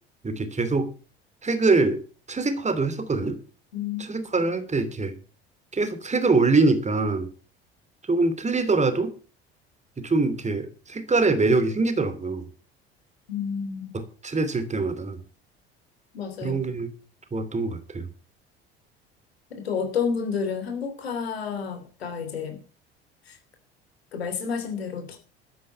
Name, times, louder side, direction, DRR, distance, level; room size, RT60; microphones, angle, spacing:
voice 1, 0.2-0.9 1.4-2.0 2.3-3.4 4.0-5.1 5.7-7.3 8.1-9.2 10.0-12.5 13.9-15.2 16.4-16.9 17.3-18.1, right 3 dB, 25° right, 10 dB, 2.8 m, -24 dB
voice 2, 3.7-4.1 13.3-13.9 16.1-16.6 19.6-22.6 23.3-23.4 24.1-25.2, left 6 dB, 80° left, 7 dB, 3.2 m, -30 dB
12.5 x 9.8 x 5.7 m, 0.36 s
figure-of-eight pair, 60°, 30 cm